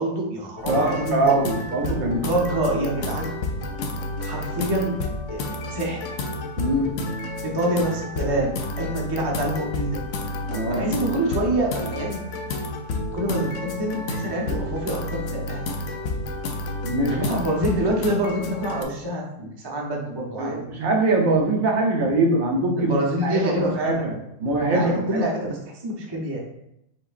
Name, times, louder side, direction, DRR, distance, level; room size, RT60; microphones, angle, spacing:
voice 1, 0.0-1.4 2.1-3.3 4.2-4.9 5.3-6.0 7.4-10.0 10.7-12.2 13.1-15.6 17.1-20.7 22.8-24.0 24.7-26.4, right 1 dB, 30° right, -2 dB, 0.4 m, -26 dB
sound 1, 0.6-18.8, left 2 dB, 65° left, 0.8 m, -30 dB
voice 2, 0.7-2.3 6.6-6.9 10.5-10.9 16.8-17.4 20.4-22.9 23.2-23.6 23.8-25.3, right 2 dB, 65° right, 1 dB, 1.1 m, -23 dB
5.6 x 3.7 x 2.4 m, 0.81 s
omnidirectional pair, 1.7 m